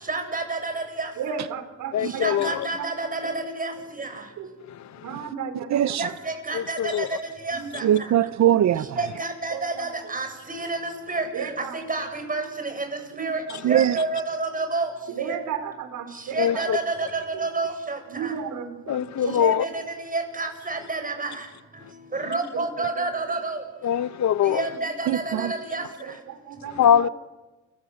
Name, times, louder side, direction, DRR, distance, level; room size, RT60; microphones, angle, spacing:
voice 1, 0.1-1.1 2.2-4.1 6.0-7.1 7.4-7.8 8.9-12.9 13.2-13.4 13.7-14.9 15.2-15.3 16.3-18.3 19.4-19.8 20.1-21.4 22.1-23.6 24.4-25.8, right 3 dB, 25° right, 7.7 m, -29 dB
voice 2, 1.2-2.4 3.2-3.3 4.4-4.5 5.0-6.0 7.5-7.7 9.5-9.8 11.3-11.8 13.1-13.6 15.1-16.8 18.1-19.4 22.2-22.6 26.0-26.9, right 7 dB, 85° right, 4.5 m, -34 dB
voice 3, 1.9-2.7 4.7-5.3 6.5-7.1 16.4-16.8 18.9-19.7 23.8-24.7 26.7-27.1, left 9 dB, 65° left, 1.2 m, -23 dB
voice 4, 5.7-6.1 7.8-8.9 13.6-14.0 25.1-25.5, right 11 dB, 65° right, 0.9 m, -21 dB
29.5 x 24.5 x 7.9 m
cardioid pair, 90°, 30 cm